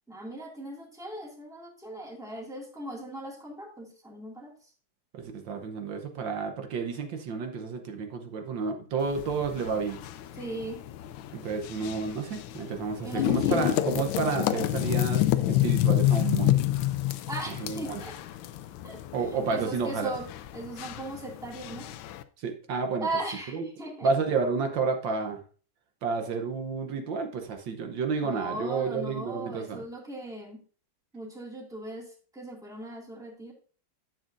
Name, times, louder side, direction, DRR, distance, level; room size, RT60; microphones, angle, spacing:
voice 1, 0.1-4.5 10.3-10.8 13.0-13.6 17.2-18.2 18.8-19.0 19.5-20.3 20.5-21.9 23.0-24.1 28.2-30.6 31.1-32.1 32.3-33.5, right 2 dB, ahead, -1 dB, 2.0 m, -38 dB
voice 2, 5.1-10.0 11.3-16.6 17.6-18.0 19.1-20.1 22.4-23.1 23.5-23.6 24.0-25.4 26.0-29.8, right 5 dB, 70° right, 5 dB, 1.6 m, -30 dB
sound 1, 9.0-22.2, left 14 dB, 80° left, 1.3 m, -29 dB
10.5 x 7.5 x 2.5 m, 0.39 s
omnidirectional pair, 2.1 m